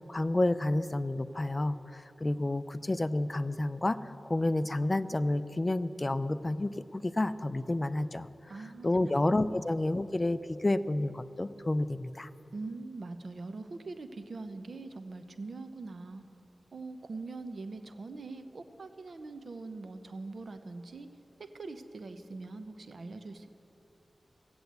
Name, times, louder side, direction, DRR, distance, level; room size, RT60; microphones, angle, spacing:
voice 1, 0.1-4.0 4.3-8.3 8.8-12.3, left 2 dB, 30° left, 14 dB, 0.5 m, -30 dB
voice 2, 8.5-9.2 12.5-16.3 16.7-21.1 21.6-23.5, right 3 dB, 75° right, 8 dB, 0.8 m, -42 dB
16.0 x 7.9 x 8.1 m, 2.9 s
cardioid pair, 55°, 0 cm